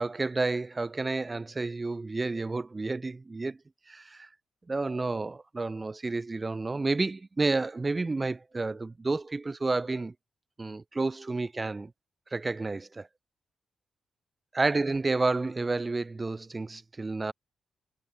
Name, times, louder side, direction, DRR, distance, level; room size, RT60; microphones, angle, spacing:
voice 1, 0.0-3.6 3.9-4.3 4.7-10.1 10.6-11.9 12.3-13.1 14.5-17.3, right 3 dB, 25° right, 2.9 m, -30 dB
cardioid pair, 110°, 0 cm